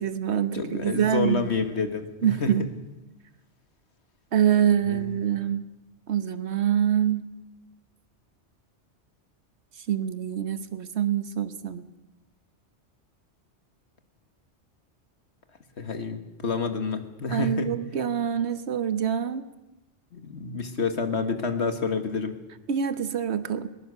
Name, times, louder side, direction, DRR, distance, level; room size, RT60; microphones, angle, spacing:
voice 1, 0.0-1.5 2.2-2.7 4.3-5.6 6.1-7.2 9.9-11.8 17.3-19.4 22.7-23.7, right 9 dB, 70° right, 12 dB, 1.3 m, -25 dB
voice 2, 0.5-2.7 4.9-5.2 15.8-17.7 20.1-22.4, left 4 dB, 70° left, 7 dB, 1.9 m, -29 dB
21.0 x 20.0 x 6.8 m, 1.0 s
omnidirectional pair, 1.2 m